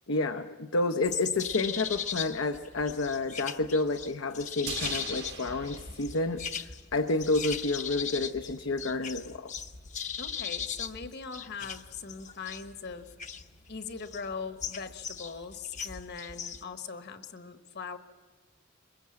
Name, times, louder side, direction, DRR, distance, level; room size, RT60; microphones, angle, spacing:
voice 1, 0.1-6.4 6.9-9.5, left 2 dB, 70° left, 7 dB, 0.8 m, -30 dB
sound 1, 1.0-16.6, left 7 dB, 35° left, 0.9 m, -38 dB
sound 2, 4.7-7.1 7.3-7.4, right 7 dB, 55° right, 1.3 m, -41 dB
voice 2, 10.2-13.1 13.7-18.0, left 5 dB, 55° left, 9 dB, 1.3 m, -40 dB
23.0 x 21.5 x 7.5 m, 1.3 s
head